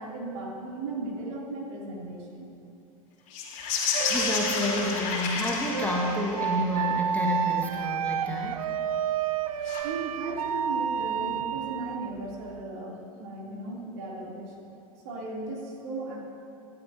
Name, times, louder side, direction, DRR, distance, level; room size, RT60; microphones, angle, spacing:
voice 1, 0.0-2.5 9.8-14.5 15.0-16.2, right 2 dB, 55° right, -3 dB, 3.3 m, -36 dB
sound 1, 3.3-6.8 9.6-9.8, left 5 dB, 40° left, 3.3 m, -30 dB
sound 2, 3.9-12.6, right 9 dB, 70° right, 0.5 m, -30 dB
voice 2, 4.0-8.6, left 1 dB, 10° left, -2 dB, 2.0 m, -30 dB
25.0 x 12.0 x 2.9 m, 2.9 s
figure-of-eight pair, 85°, 18 cm